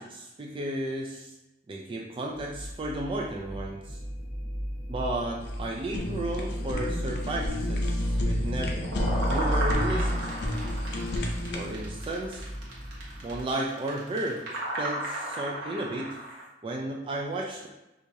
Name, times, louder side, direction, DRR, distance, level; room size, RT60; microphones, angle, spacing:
voice 1, 0.0-1.3 1.7-4.0 4.9-8.8 9.3-10.3 11.5-12.5 13.2-14.5 14.8-16.2 16.6-17.7, right 1 dB, 30° right, -1 dB, 0.3 m, -33 dB
sound 1, 2.3-13.4, equal, ahead, 1.0 m, -33 dB
Fire, 5.4-11.7, left 2 dB, 65° left, 0.5 m, -34 dB
sound 2, 8.4-16.4, right 1 dB, 85° right, 1.0 m, -34 dB
4.5 x 2.4 x 2.7 m, 0.96 s
head